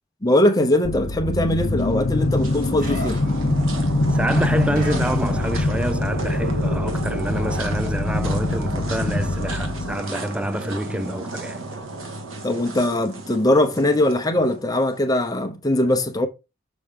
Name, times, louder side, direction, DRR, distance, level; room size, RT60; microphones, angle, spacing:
voice 1, 0.2-3.2 12.4-16.3, left 1 dB, 20° left, 0.8 m, -21 dB
sound 1, 0.8-10.0, left 2 dB, 45° left, 0.6 m, -24 dB
sound 2, 1.7-15.0, right 2 dB, 75° right, 1.7 m, -33 dB
sound 3, 1.8-6.0 6.3-9.6, equal, 45° right, 2.0 m, -42 dB
voice 2, 4.1-11.6, right 1 dB, 5° right, 0.3 m, -27 dB
6.7 x 6.2 x 3.7 m
head